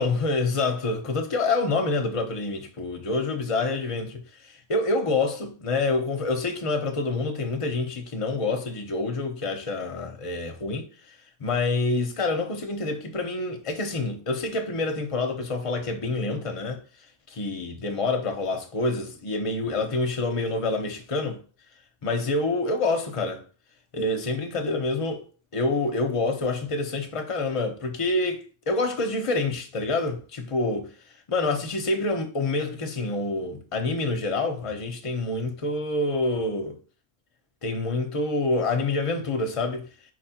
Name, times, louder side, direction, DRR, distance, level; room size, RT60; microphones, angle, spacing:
voice 1, 0.0-10.9 11.4-16.8 17.3-21.4 22.0-23.4 23.9-25.2 25.5-30.9 31.3-36.8 37.6-39.9, left 3 dB, 35° left, 0.7 m, -27 dB
4.7 x 3.5 x 2.8 m
omnidirectional pair, 1.3 m